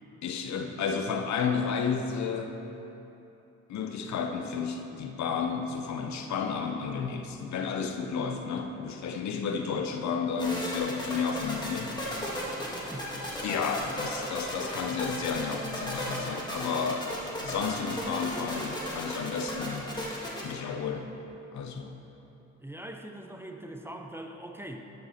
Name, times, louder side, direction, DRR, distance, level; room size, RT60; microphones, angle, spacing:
voice 1, 0.2-2.5 3.7-11.9 13.4-17.0 17.4-19.9 20.4-21.1 21.5-22.0, left 6 dB, 65° left, 5 dB, 0.8 m, -32 dB
sound 1, 10.4-20.5, left 1 dB, 15° left, 2.0 m, -35 dB
voice 2, 12.7-13.3 13.8-13.9 22.6-24.8, right 1 dB, 10° right, 4 dB, 0.6 m, -42 dB
12.0 x 5.4 x 4.3 m, 3.0 s
cardioid pair, 90°, 30 cm